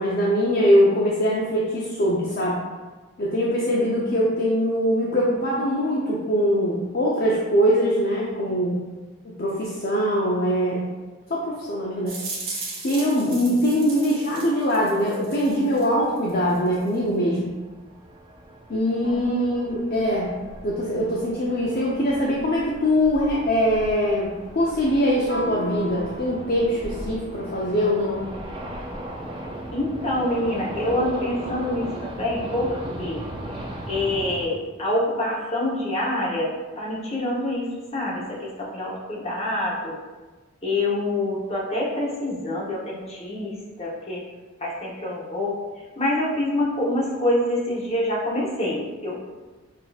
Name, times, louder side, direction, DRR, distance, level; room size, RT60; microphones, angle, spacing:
voice 1, 0.0-2.6 3.2-8.8 9.4-10.9 11.3-12.2 12.5-17.5 18.7-20.3 20.6-28.3, equal, 45° left, -5 dB, 0.5 m, -22 dB
sound 1, 12.1-15.9 16.2-16.9, right 3 dB, 45° right, 1.1 m, -36 dB
sound 2, 15.5-34.5, right 1 dB, 25° right, 0.4 m, -38 dB
voice 2, 19.0-19.9 29.7-33.2 33.9-39.9 40.6-44.2 44.6-45.6 46.0-49.2, left 1 dB, 30° left, -5 dB, 0.9 m, -26 dB
Guitar, 25.3-27.7, left 1 dB, 60° left, 1.2 m, -36 dB
6.0 x 2.7 x 2.3 m, 1.2 s
head